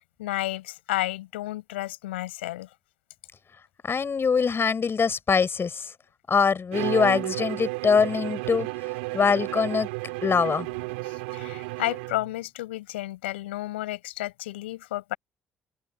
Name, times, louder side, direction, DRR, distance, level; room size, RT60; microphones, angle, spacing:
voice 1, 0.2-2.7 11.1-15.2, left 16 dB, 90° left, 6.7 m, -32 dB
voice 2, 3.8-5.9 6.3-8.7 9.1-9.9 10.2-10.7, left 5 dB, 40° left, 5.2 m, -23 dB
Bowed string instrument, 6.7-12.4, right 25 dB, 85° right, 3.5 m, -32 dB
open air
hypercardioid pair, 50°, 6 cm